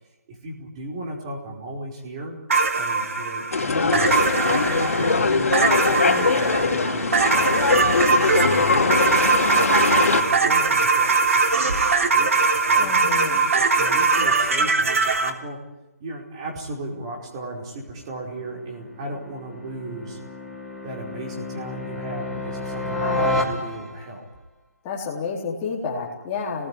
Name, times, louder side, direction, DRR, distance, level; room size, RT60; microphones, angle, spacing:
voice 1, 0.3-2.4 2.7-4.0 4.2-8.0 8.4-12.9 13.6-15.6 16.0-20.2 20.8-24.2, right 1 dB, 20° right, 1 dB, 4.8 m, -35 dB
sound 1, 2.5-15.3, right 4 dB, 65° right, 3.4 m, -21 dB
sound 2, 3.5-10.2, left 4 dB, 75° left, 3.6 m, -21 dB
voice 2, 12.8-13.5 22.8-23.4 24.8-26.7, left 5 dB, 15° left, -2 dB, 4.0 m, -30 dB
sound 3, 17.8-24.2, left 1 dB, 5° right, 2.0 m, -31 dB
27.5 x 20.5 x 9.9 m, 1.0 s
hypercardioid pair, 180°, 8 cm